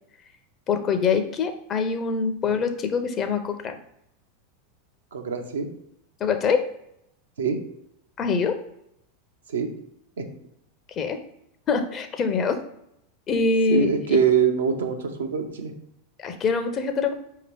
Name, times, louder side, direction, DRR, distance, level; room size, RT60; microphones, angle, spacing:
voice 1, 0.7-3.7 6.2-6.7 8.2-8.6 11.0-11.2 11.7-12.6 13.3-14.2 16.2-17.1, left 5 dB, 35° left, 8 dB, 0.6 m, -24 dB
voice 2, 5.1-5.7 7.4-7.6 9.5-9.7 10.2-10.3 13.7-15.7, right 6 dB, 85° right, 4 dB, 0.6 m, -23 dB
5.0 x 2.8 x 3.3 m, 0.78 s
hypercardioid pair, 95°, 0 cm